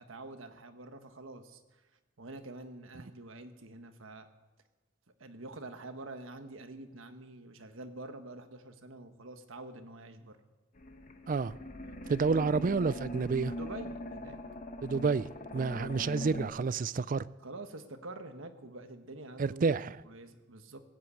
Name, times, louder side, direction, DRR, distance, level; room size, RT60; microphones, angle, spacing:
voice 1, 0.0-1.6 2.2-4.3 5.2-10.4 13.5-14.4 17.4-20.8, right 2 dB, 85° right, 1.3 m, -46 dB
sound 1, 10.7-16.5, left 1 dB, 40° left, 1.2 m, -42 dB
voice 2, 12.1-13.5 14.8-17.2 19.4-20.0, right 4 dB, 45° right, 0.4 m, -29 dB
18.5 x 7.7 x 8.3 m
head